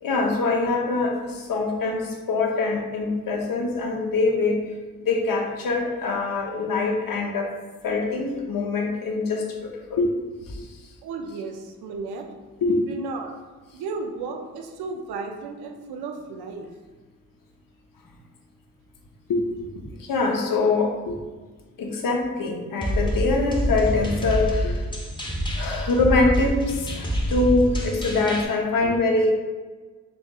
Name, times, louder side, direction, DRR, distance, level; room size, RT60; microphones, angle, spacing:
voice 1, 0.0-4.7 5.0-7.5 7.8-10.1 10.4-10.8 12.6-12.8 19.3-21.2 21.8-24.8 25.6-29.3, left 3 dB, 60° left, 1 dB, 0.8 m, -24 dB
voice 2, 11.0-12.3 12.9-13.3 13.7-16.7, right 4 dB, 80° right, 3 dB, 0.5 m, -34 dB
sound 1, 22.8-28.4, equal, 10° left, 0.9 m, -26 dB
4.2 x 2.7 x 2.3 m, 1.3 s
supercardioid pair, 45°, 38 cm